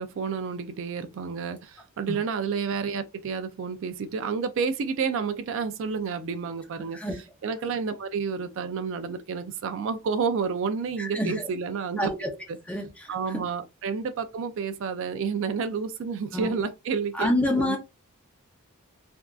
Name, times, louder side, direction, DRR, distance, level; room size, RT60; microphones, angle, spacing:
voice 1, 0.0-7.0 7.4-12.1 13.1-17.3 17.6-17.8, right 5 dB, 60° right, 0.3 m, -30 dB
voice 2, 11.0-11.5 12.0-12.3 12.7-13.5 16.3-16.6 17.1-17.8, left 1 dB, 5° left, 0.6 m, -28 dB
3.4 x 2.5 x 2.3 m
head